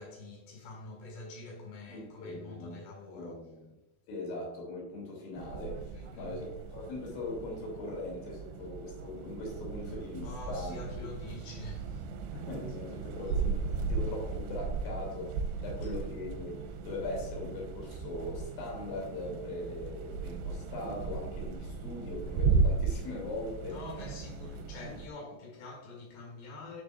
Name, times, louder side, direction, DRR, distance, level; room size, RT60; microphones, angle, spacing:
voice 1, 0.0-3.4 5.9-6.4 10.2-12.1 15.8-15.9 23.7-26.8, left 2 dB, 85° left, 4.0 m, -46 dB
voice 2, 1.9-3.7 4.1-11.1 12.3-23.8 24.9-25.0, left 2 dB, 60° left, 4.3 m, -40 dB
sound 1, 5.4-25.1, right 4 dB, 85° right, 2.6 m, -36 dB
9.6 x 6.9 x 2.4 m
omnidirectional pair, 4.7 m